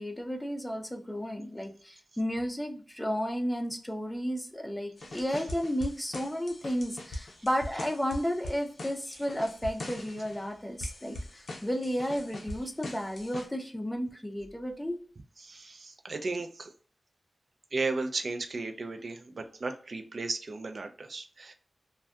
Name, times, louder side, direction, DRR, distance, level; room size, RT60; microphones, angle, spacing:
voice 1, 0.0-15.0, equal, 10° left, 4 dB, 0.4 m, -33 dB
sound 1, 5.0-10.5 10.8-13.5, left 1 dB, 75° left, 0.6 m, -42 dB
voice 2, 15.4-16.7 17.7-21.5, right 3 dB, 60° right, 7 dB, 0.3 m, -35 dB
2.6 x 2.2 x 2.2 m, 0.44 s
wide cardioid pair, 80°, 0 cm